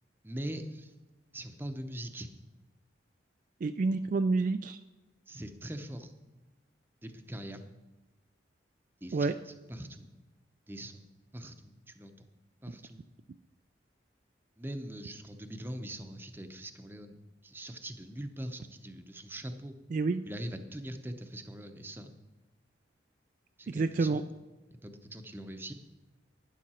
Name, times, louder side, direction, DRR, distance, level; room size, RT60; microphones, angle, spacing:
voice 1, 0.2-0.9 1.3-2.3 5.3-6.1 7.0-7.6 9.0-10.1 10.7-11.0 11.3-12.3 12.6-13.0 14.6-17.2 17.4-19.7 20.2-22.1 23.6-24.3 24.8-25.7, right 1 dB, 10° right, 7 dB, 0.7 m, -42 dB
voice 2, 3.6-4.8 9.1-9.3 19.9-20.2 23.7-24.2, right 3 dB, 45° right, 9 dB, 0.3 m, -28 dB
12.0 x 9.9 x 4.3 m, 1.2 s
head